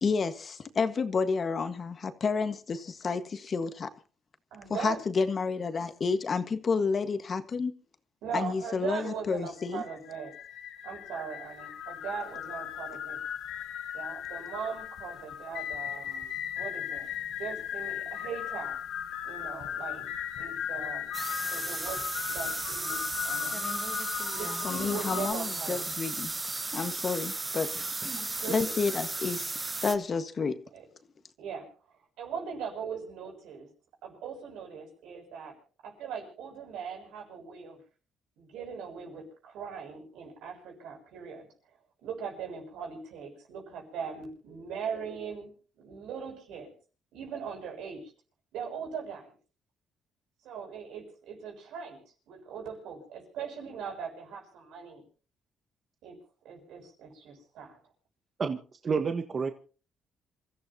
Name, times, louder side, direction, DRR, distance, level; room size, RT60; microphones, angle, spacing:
voice 1, 0.0-3.9 4.7-7.7 8.3-9.8 24.6-27.7 28.5-30.6, left 5 dB, 45° left, 1.5 m, -30 dB
voice 2, 4.5-5.0 8.2-10.3 10.8-13.2 13.9-18.8 19.2-20.1 20.4-21.1 21.5-23.5 23.8-23.9 24.3-25.8 28.1-28.7 30.7-30.8 31.4-31.7 32.2-33.7 34.0-35.5 35.8-37.8 38.4-41.5 42.0-46.7 47.1-48.1 48.5-49.3 50.4-52.0 52.3-55.0 56.0-56.2 56.4-57.8, right 6 dB, 90° right, 7.1 m, -40 dB
sound 1, 9.6-25.3, left 9 dB, 80° left, 1.4 m, -37 dB
sound 2, 21.1-30.0, right 3 dB, 25° right, 1.2 m, -35 dB
voice 3, 58.4-59.5, right 5 dB, 40° right, 1.3 m, -30 dB
27.5 x 14.5 x 2.9 m
cardioid pair, 90°, 0 cm